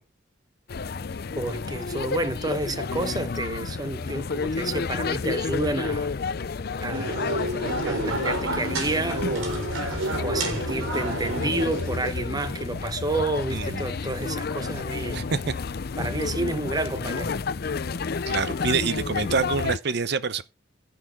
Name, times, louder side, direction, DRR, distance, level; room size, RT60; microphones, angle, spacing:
sound 1, 0.7-19.8, left 4 dB, 50° left, 0.5 m, -31 dB
voice 1, 1.3-6.1 6.8-7.5 7.8-9.8 10.2-15.3 16.0-17.4, right 2 dB, 20° right, 0.9 m, -30 dB
sound 2, 6.9-12.1, right 2 dB, 80° right, 3.6 m, -30 dB
voice 2, 13.5-13.8 15.1-15.5 18.3-20.4, right 4 dB, 55° right, 0.8 m, -26 dB
11.0 x 10.0 x 3.7 m
head